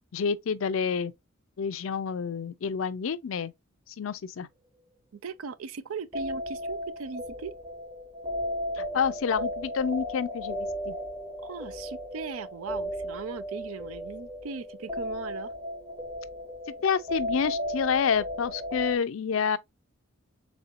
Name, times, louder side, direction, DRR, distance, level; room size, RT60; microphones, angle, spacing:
voice 1, 0.1-1.1 1.6-3.5 3.9-4.5 8.7-11.0 16.8-19.6, left 6 dB, 70° left, 0.4 m, -28 dB
voice 2, 5.1-7.5 11.4-15.5, right 5 dB, 85° right, 0.5 m, -38 dB
sound 1, 6.1-19.0, left 1 dB, 25° right, 0.8 m, -35 dB
4.2 x 3.4 x 2.5 m
head